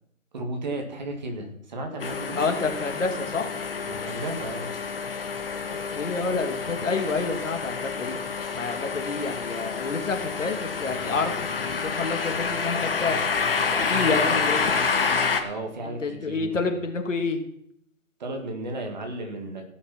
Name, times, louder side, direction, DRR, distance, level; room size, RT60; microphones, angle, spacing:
voice 1, 0.3-2.4 3.8-4.7 15.4-16.8 18.2-19.6, right 1 dB, 30° right, 3 dB, 2.0 m, -34 dB
sound 1, 2.0-15.4, left 5 dB, 40° left, 1.4 m, -28 dB
voice 2, 2.4-3.6 5.9-8.2 8.5-13.2 13.8-14.8 15.8-17.4, left 4 dB, 60° left, 4 dB, 2.5 m, -28 dB
16.0 x 6.5 x 5.9 m, 0.72 s
hypercardioid pair, 170°, 42 cm